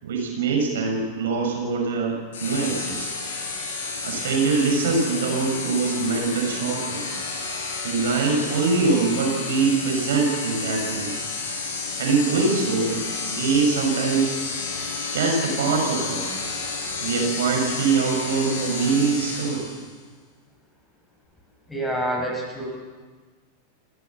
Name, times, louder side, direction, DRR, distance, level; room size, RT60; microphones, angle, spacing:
voice 1, 0.0-3.1 4.0-7.2 7.8-11.2 12.0-14.3 15.1-16.4 17.0-19.7, right 4 dB, 60° right, 1 dB, 6.0 m, -23 dB
sound 1, 2.3-19.9, left 4 dB, 60° left, 5.7 m, -31 dB
voice 2, 21.7-22.7, right 1 dB, 10° left, 0 dB, 7.3 m, -27 dB
30.0 x 15.5 x 7.3 m, 1.4 s
figure-of-eight pair, 90°, 0 cm